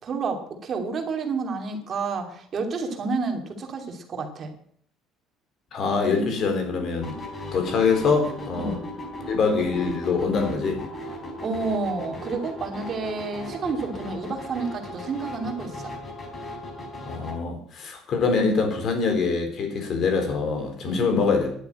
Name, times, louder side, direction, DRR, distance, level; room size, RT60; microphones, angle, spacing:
voice 1, 0.0-4.5 8.6-8.8 11.4-15.9 20.9-21.1, right 4 dB, 35° right, 4 dB, 2.8 m, -30 dB
voice 2, 5.7-7.2 7.5-8.8 9.3-10.8 17.1-21.5, left 4 dB, 40° left, 5 dB, 4.0 m, -24 dB
sound 1, 7.0-17.4, left 1 dB, 25° left, 3.8 m, -37 dB
11.5 x 9.1 x 9.3 m, 0.62 s
cardioid pair, 155°, 0 cm